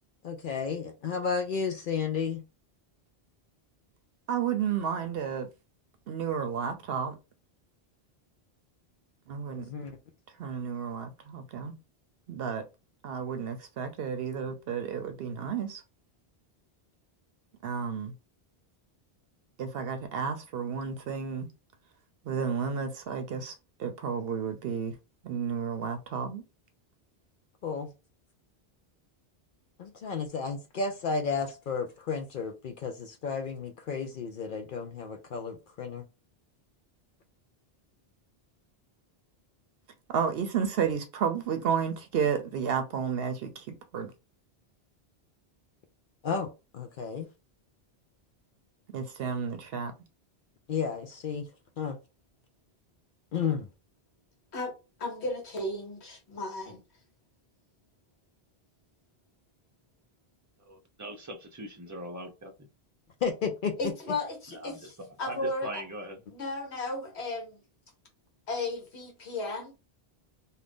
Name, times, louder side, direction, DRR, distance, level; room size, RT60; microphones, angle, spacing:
voice 1, 0.2-2.4 9.5-10.0 27.6-27.9 29.8-36.0 46.2-47.3 50.7-51.5 51.8-52.0 53.3-53.7 63.2-63.9, left 5 dB, 60° left, 0.7 m, -32 dB
voice 2, 4.3-5.5 6.1-7.2 9.3-9.7 10.4-11.7 12.3-12.6 13.0-15.8 17.6-18.1 19.6-21.5 22.2-23.5 23.8-24.9 25.2-26.4 40.1-44.1 48.9-49.9, right 7 dB, 70° right, 0.7 m, -32 dB
voice 3, 55.0-56.8 63.8-64.9 65.2-65.7 66.3-67.6 68.5-69.7, left 2 dB, 85° left, 1.4 m, -34 dB
voice 4, 60.6-62.5 64.5-66.2, right 1 dB, 20° right, 0.5 m, -41 dB
2.7 x 2.5 x 3.5 m
omnidirectional pair, 1.1 m